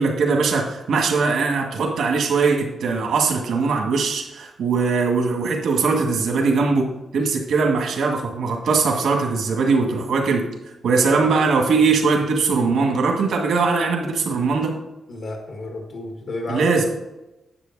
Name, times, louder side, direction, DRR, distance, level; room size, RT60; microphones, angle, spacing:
voice 1, 0.0-6.9 7.1-10.4 10.8-14.7 16.5-16.8, right 4 dB, 75° right, 1 dB, 2.0 m, -20 dB
voice 2, 10.8-11.2 15.1-16.7, left 2 dB, 55° left, 1 dB, 1.3 m, -32 dB
9.9 x 8.0 x 4.1 m, 0.95 s
wide cardioid pair, 180°, 0 cm